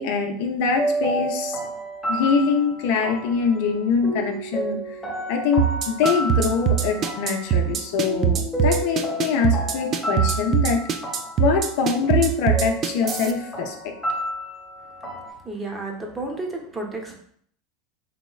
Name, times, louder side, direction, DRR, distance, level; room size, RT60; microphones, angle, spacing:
voice 1, 0.0-1.6 2.1-5.0 5.3-10.8 11.4-13.9, left 5 dB, 65° left, 2 dB, 0.5 m, -23 dB
sound 1, 0.8-15.3, equal, 10° left, 0.9 m, -31 dB
sound 2, 5.6-13.3, right 10 dB, 40° right, 0.4 m, -21 dB
voice 2, 15.4-17.2, right 2 dB, 20° right, 1 dB, 0.7 m, -31 dB
3.0 x 2.9 x 2.3 m, 0.63 s
hypercardioid pair, 90°, 0 cm